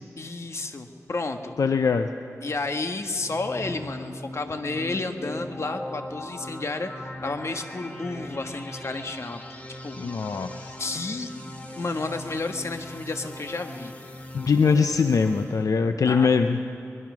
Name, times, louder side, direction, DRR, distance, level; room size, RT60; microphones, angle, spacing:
voice 1, 0.2-1.5 2.4-9.4 9.8-10.0 10.8-11.3 11.8-13.9 16.0-16.3, left 3 dB, 50° left, 6 dB, 1.3 m, -31 dB
voice 2, 1.6-2.1 10.0-10.7 14.3-16.6, left 5 dB, 75° left, 7 dB, 0.6 m, -22 dB
sound 1, 3.1-15.6, left 1 dB, 25° left, 2.4 m, -40 dB
23.5 x 20.5 x 6.2 m, 2.8 s
wide cardioid pair, 105°, 6 cm